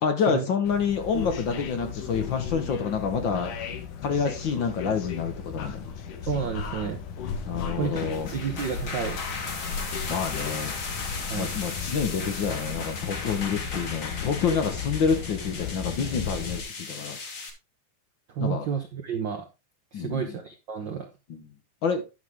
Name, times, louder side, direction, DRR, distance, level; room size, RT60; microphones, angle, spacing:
voice 1, 0.0-3.5 4.0-5.8 7.4-8.3 10.0-10.8 11.3-17.2 18.4-18.7 19.9-20.3 21.3-21.4 21.8-22.0, left 6 dB, 65° left, 7 dB, 1.1 m, -28 dB
sound 1, 0.6-16.6, left 6 dB, 80° left, 2.8 m, -35 dB
voice 2, 6.2-7.0 7.8-9.2 11.3-11.5 18.3-19.5 19.9-21.1, right 7 dB, 80° right, 4 dB, 1.0 m, -31 dB
sound 2, 7.8-17.5, left 4 dB, 45° left, 2.4 m, -36 dB
11.0 x 6.5 x 3.6 m, 0.27 s
omnidirectional pair, 3.6 m